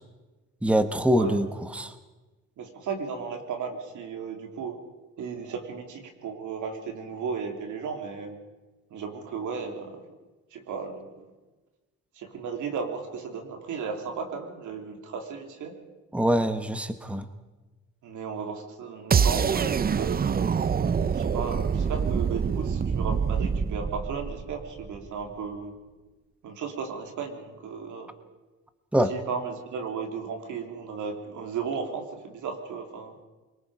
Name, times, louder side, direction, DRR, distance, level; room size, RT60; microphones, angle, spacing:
voice 1, 0.6-1.9 16.1-17.2 28.9-29.1, equal, 5° right, 9 dB, 1.3 m, -24 dB
voice 2, 2.6-4.8 5.2-8.4 8.9-10.0 10.5-11.3 12.1-15.7 18.0-20.2 21.1-25.8 26.4-28.1 29.1-33.1, right 5 dB, 75° right, 4 dB, 3.2 m, -35 dB
sound 1, 19.1-25.1, right 6 dB, 30° right, 0.6 m, -26 dB
24.5 x 22.5 x 5.0 m, 1.2 s
cardioid pair, 90°, 30 cm